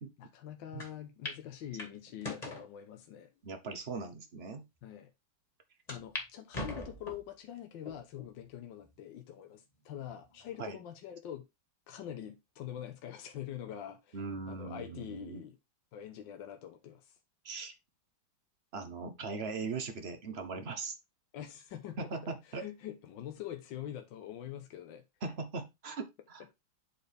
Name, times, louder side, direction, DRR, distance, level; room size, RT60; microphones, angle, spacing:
voice 1, 0.2-3.3 4.8-5.1 5.9-11.5 11.9-14.2 14.5-15.6 15.9-17.2 21.3-22.0 22.4-25.0, left 10 dB, 75° left, 1.6 m, -44 dB
sound 1, 0.8-0.9 1.2-1.4 1.8-2.7 3.3-3.4 4.1-4.2 4.5-4.6 5.9-6.3 6.5-7.3 7.9-8.3 8.8-8.9 10.1-10.5, left 2 dB, 20° left, 1.9 m, -41 dB
voice 2, 3.4-4.6 10.6-10.8 14.1-15.4 17.4-17.8 18.7-20.9 22.0-22.7 25.2-26.4, right 4 dB, 40° right, 1.0 m, -39 dB
8.3 x 4.2 x 3.4 m
omnidirectional pair, 2.1 m